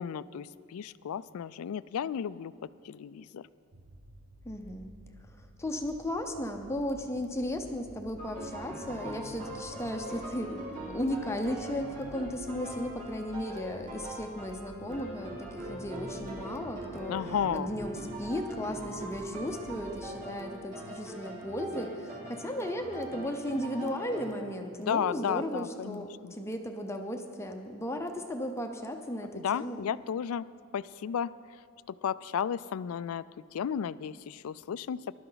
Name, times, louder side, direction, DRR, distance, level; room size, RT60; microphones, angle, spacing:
voice 1, 0.0-3.5 17.1-17.7 24.9-26.3 29.4-30.5 30.7-31.3 32.0-33.2 33.5-35.0, left 8 dB, 75° left, 18 dB, 0.3 m, -33 dB
sound 1, 3.7-20.1, right 1 dB, 60° right, 0.9 m, -52 dB
voice 2, 4.4-4.9 5.3-17.2 17.5-29.8, left 1 dB, 10° left, 4 dB, 0.7 m, -35 dB
sound 2, 8.2-24.3, right 1 dB, 35° right, 4.1 m, -42 dB
20.0 x 12.0 x 4.0 m, 2.5 s
head